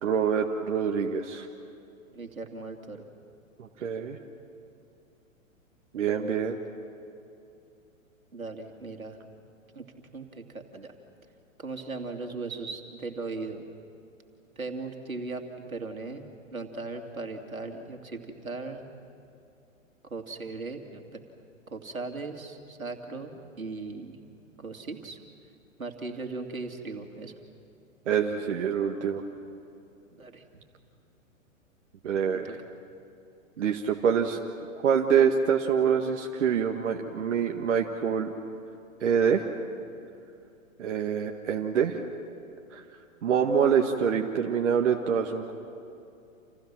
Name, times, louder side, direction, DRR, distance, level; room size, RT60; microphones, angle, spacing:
voice 1, 0.0-1.5 3.6-4.2 5.9-6.6 28.1-29.2 32.0-32.5 33.6-34.4 34.8-38.3 39.0-39.4 40.8-42.0 42.7-42.8 43.2-45.5, right 7 dB, 60° right, 2 dB, 1.9 m, -25 dB
voice 2, 2.1-3.0 8.3-9.2 9.7-9.9 10.1-10.9 11.6-13.6 14.6-15.4 15.7-18.9 20.1-21.2 21.7-24.1 24.6-25.2 25.8-27.3 30.2-30.6 32.3-32.6, right 3 dB, 85° right, 4 dB, 2.9 m, -38 dB
29.5 x 28.5 x 6.1 m, 2.6 s
figure-of-eight pair, 115°, 40 cm